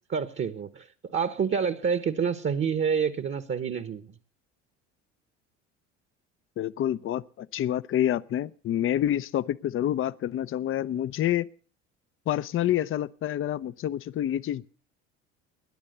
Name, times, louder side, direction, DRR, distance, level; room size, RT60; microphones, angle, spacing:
voice 1, 0.1-4.1, right 6 dB, 30° right, 1.2 m, -28 dB
voice 2, 6.6-11.5 12.3-14.7, left 11 dB, 35° left, 0.6 m, -28 dB
17.5 x 10.5 x 6.6 m
hypercardioid pair, 65°, 36 cm